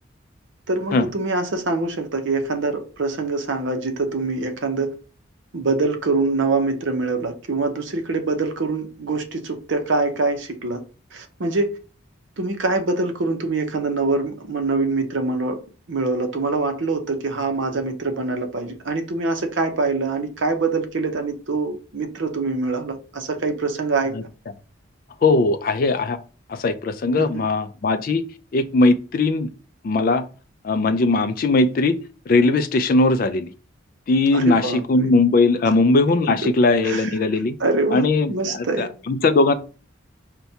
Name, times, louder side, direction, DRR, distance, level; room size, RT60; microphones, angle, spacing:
voice 1, 0.7-4.9 5.5-10.8 11.1-11.7 12.4-15.6 15.9-24.2 27.2-27.3 34.3-35.1 36.4-36.5 36.8-37.1 37.6-38.9, right 3 dB, 65° right, 0.7 m, -24 dB
voice 2, 25.2-26.2 26.5-28.2 28.5-29.5 29.8-30.3 30.6-32.0 32.3-33.5 34.1-37.6 37.9-39.5, left 3 dB, 45° left, 0.3 m, -19 dB
5.6 x 2.2 x 2.7 m
head